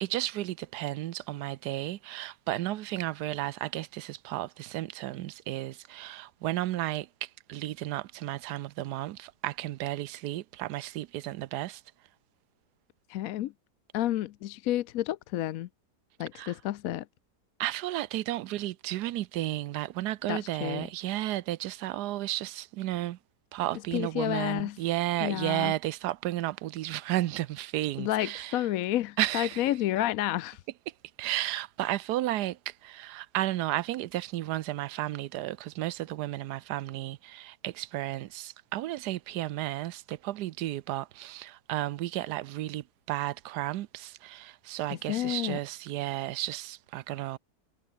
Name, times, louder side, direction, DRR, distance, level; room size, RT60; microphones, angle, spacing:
voice 1, 0.0-11.8 16.3-16.6 17.6-23.2 23.5-28.6 29.2-29.7 31.2-47.4, right 15 dB, 80° right, 1.2 m, -33 dB
voice 2, 13.1-13.5 13.9-15.7 16.2-17.1 20.3-20.9 23.9-24.8 25.2-25.7 28.0-30.6 44.9-45.6, left 13 dB, 70° left, 1.0 m, -30 dB
omnidirectional pair, 1.7 m